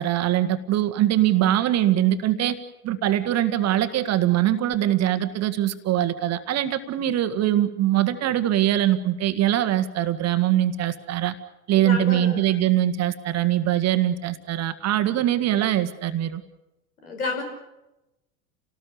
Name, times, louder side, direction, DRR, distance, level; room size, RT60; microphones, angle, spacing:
voice 1, 0.0-2.6 2.8-11.3 11.7-16.4, right 12 dB, 35° right, 10 dB, 1.6 m, -22 dB
voice 2, 11.8-12.6 17.0-17.4, left 3 dB, 75° left, 3 dB, 5.2 m, -30 dB
29.5 x 19.0 x 7.1 m, 0.97 s
figure-of-eight pair, 80°, 44 cm